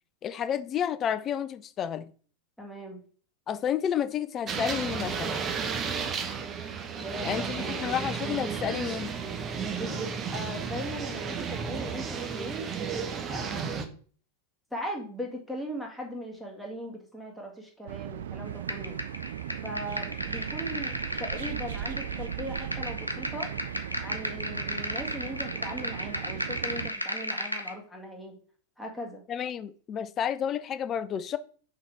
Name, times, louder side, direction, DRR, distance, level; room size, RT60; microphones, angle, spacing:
voice 1, 0.2-2.1 3.5-5.4 7.2-9.1 29.3-31.4, left 9 dB, 30° left, 0.4 m, -31 dB
voice 2, 2.6-3.0 7.0-7.9 9.7-13.9 14.7-19.0 19.6-23.5 24.0-28.4 28.8-29.2, equal, ahead, 1.7 m, -39 dB
sound 1, 4.5-13.9, right 6 dB, 25° right, 0.8 m, -33 dB
sound 2, 17.9-26.9, right 11 dB, 60° right, 0.3 m, -38 dB
sound 3, 18.7-27.7, equal, 90° left, 0.7 m, -35 dB
5.6 x 3.9 x 4.5 m
figure-of-eight pair, 90°, 0 cm